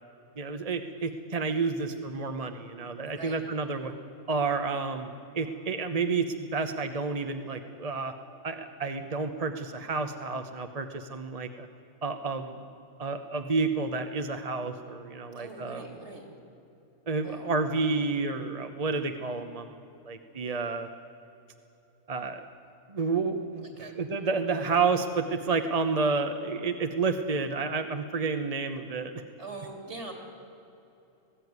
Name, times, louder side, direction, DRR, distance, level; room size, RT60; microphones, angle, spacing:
voice 1, 0.4-3.9 4.3-5.1 5.3-8.1 8.4-11.7 12.0-12.6 13.0-15.8 17.1-20.9 22.1-22.4 22.9-23.7 24.0-29.2, right 4 dB, 30° right, 7 dB, 0.9 m, -30 dB
voice 2, 3.0-3.5 15.3-16.4 17.2-17.4 23.6-24.0 24.7-24.8 29.4-30.1, right 3 dB, 50° right, 3 dB, 3.6 m, -43 dB
19.5 x 15.0 x 9.5 m, 2.9 s
omnidirectional pair, 1.5 m